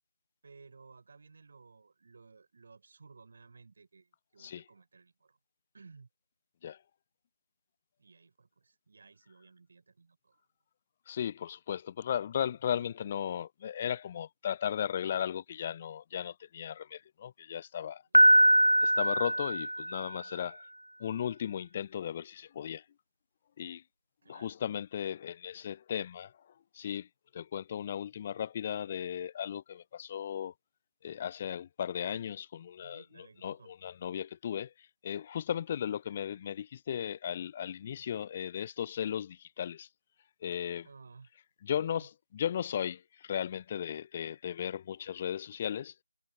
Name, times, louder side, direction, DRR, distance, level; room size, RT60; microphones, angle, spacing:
voice 1, 0.4-5.4 5.7-6.1 8.0-10.4 24.2-24.6 32.8-33.7 40.8-41.3 42.0-42.1, right 4 dB, 35° right, 6.2 m, -57 dB
voice 2, 11.1-18.0 18.8-20.7 21.0-22.8 23.6-23.8 24.3-26.3 26.7-27.1 27.3-30.5 31.0-39.9 40.4-40.9 41.6-45.9, left 9 dB, 20° left, 0.5 m, -36 dB
Piano, 18.1-20.2, right 1 dB, 75° right, 0.3 m, -23 dB
figure-of-eight pair, 160°, 0 cm